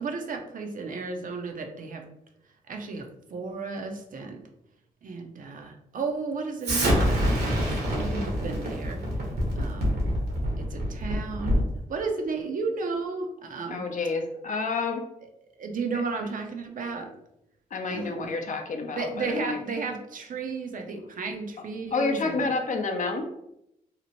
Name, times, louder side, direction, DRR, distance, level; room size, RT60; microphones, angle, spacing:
voice 1, 0.0-2.1 2.7-4.4 5.0-9.0 9.6-10.0 10.6-11.6 11.9-13.8 15.6-17.1 17.9-18.3 18.9-22.5, right 4 dB, 55° right, 4 dB, 0.5 m, -33 dB
Explosion, 6.6-11.8, equal, 70° right, 1.0 m, -26 dB
voice 2, 13.7-15.0 17.7-19.6 21.9-23.3, left 3 dB, 50° left, 3 dB, 0.6 m, -29 dB
2.8 x 2.0 x 2.9 m, 0.79 s
supercardioid pair, 45°, 17 cm